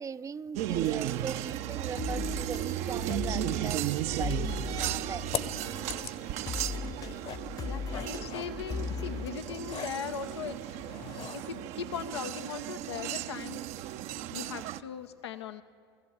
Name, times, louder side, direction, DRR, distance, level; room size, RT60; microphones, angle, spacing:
voice 1, 0.0-5.3, right 6 dB, 25° right, 0.5 m, -40 dB
sound 1, 0.6-14.8, right 13 dB, 55° right, 0.7 m, -35 dB
sound 2, 0.7-6.2 6.5-9.3, left 5 dB, 25° left, 0.5 m, -38 dB
sound 3, 2.5-11.6, left 7 dB, 45° left, 1.1 m, -44 dB
voice 2, 7.6-10.8 11.3-13.6 14.3-15.6, left 7 dB, 80° left, 0.7 m, -39 dB
20.5 x 14.5 x 8.7 m
hypercardioid pair, 80°, 14 cm